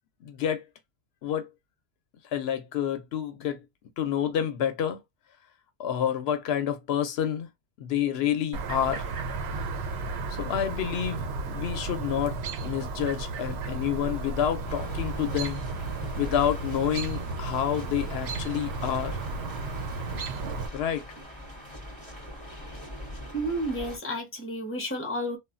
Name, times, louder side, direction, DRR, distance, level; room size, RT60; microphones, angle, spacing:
voice 1, 0.2-0.6 1.2-1.5 2.3-3.6 4.0-5.0 5.8-7.5 7.8-9.1 10.3-15.6 16.2-19.2 20.7-21.1, left 9 dB, 80° left, 0.8 m, -29 dB
Chirp tweet, 8.5-20.7, right 3 dB, 90° right, 0.9 m, -34 dB
sound 1, 14.6-24.0, left 1 dB, 25° right, 1.9 m, -42 dB
voice 2, 23.3-25.4, right 1 dB, 15° left, 0.8 m, -31 dB
3.1 x 2.2 x 2.4 m
omnidirectional pair, 1.0 m